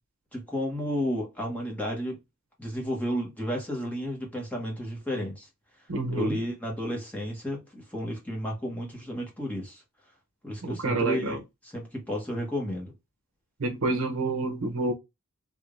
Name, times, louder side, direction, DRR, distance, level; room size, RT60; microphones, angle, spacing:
voice 1, 0.3-2.2 2.6-5.5 6.1-9.8 10.4-11.4 11.7-12.9, equal, 5° left, 1.3 m, -32 dB
voice 2, 5.9-6.4 10.6-11.4 13.6-14.9, right 2 dB, 70° right, 0.7 m, -28 dB
3.4 x 2.7 x 2.5 m
head